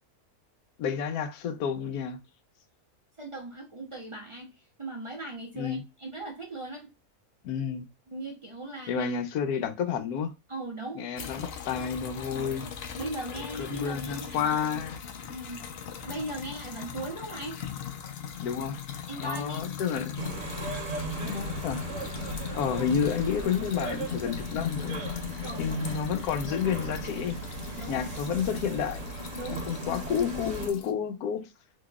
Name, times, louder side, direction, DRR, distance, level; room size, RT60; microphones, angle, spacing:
voice 1, 0.8-2.2 5.5-5.8 7.4-7.9 8.9-10.3 11.0-12.7 13.6-15.0 18.4-18.8 19.2-20.1 21.2-21.8 22.5-25.0 25.6-27.4 27.9-29.1 29.5-31.5, left 7 dB, 90° left, 1.1 m, -30 dB
voice 2, 3.2-4.5 4.8-6.9 8.1-9.1 10.5-11.1 12.3-12.5 13.0-14.8 15.2-15.6 16.0-17.6 19.1-19.6 25.4-25.9 27.7-28.0 29.3-29.7, right 2 dB, 50° right, 0.3 m, -38 dB
sound 1, 11.2-30.9, left 8 dB, 65° left, 0.6 m, -39 dB
sound 2, 20.2-30.7, right 3 dB, 65° right, 1.3 m, -37 dB
3.9 x 2.8 x 2.3 m
omnidirectional pair, 1.6 m